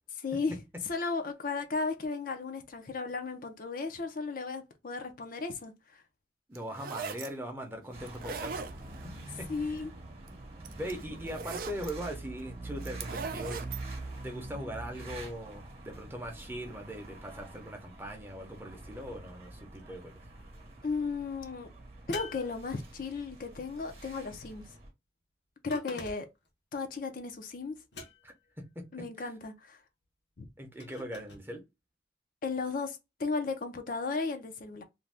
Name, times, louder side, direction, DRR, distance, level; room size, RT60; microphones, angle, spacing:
voice 1, 0.2-0.6 0.8-6.0 9.5-9.9 20.8-21.7 22.1-24.6 25.6-26.3 26.7-27.8 28.9-29.8 30.4-30.5 32.4-34.8, left 4 dB, 50° left, 0.5 m, -35 dB
voice 2, 6.5-8.6 9.4-9.8 10.7-13.6 14.2-20.1 28.2-28.8 29.2-29.3 30.6-31.6, equal, 10° right, 0.7 m, -40 dB
sound 1, 6.6-7.3 8.1-9.1 10.3-10.4 10.6-11.9 12.8-13.8, right 5 dB, 50° right, 0.4 m, -39 dB
sound 2, 7.9-24.9, right 2 dB, 35° right, 1.0 m, -45 dB
sound 3, 22.1-23.2 25.7-26.5 27.9-28.5 30.8-31.5, left 3 dB, 65° left, 0.9 m, -45 dB
2.6 x 2.2 x 3.3 m
head